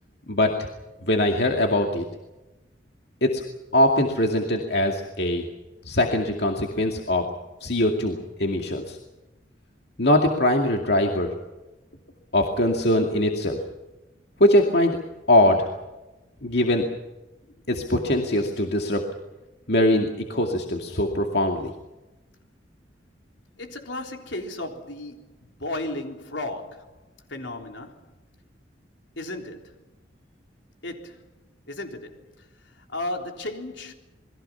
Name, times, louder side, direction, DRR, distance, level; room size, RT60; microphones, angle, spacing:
voice 1, 1.0-2.0 3.2-3.4 3.7-5.5 5.9-7.2 7.6-9.0 10.0-11.3 12.3-13.6 14.4-15.0 15.3-15.7 16.4-16.8 17.7-19.0 19.7-21.7, left 1 dB, 60° left, 2 dB, 2.4 m, -22 dB
voice 2, 23.6-25.3 25.6-26.9 27.3-27.9 29.2-29.8 30.8-31.2 31.7-32.2 32.9-33.9, left 2 dB, 75° left, 3 dB, 3.7 m, -34 dB
28.5 x 21.5 x 5.8 m, 1.1 s
head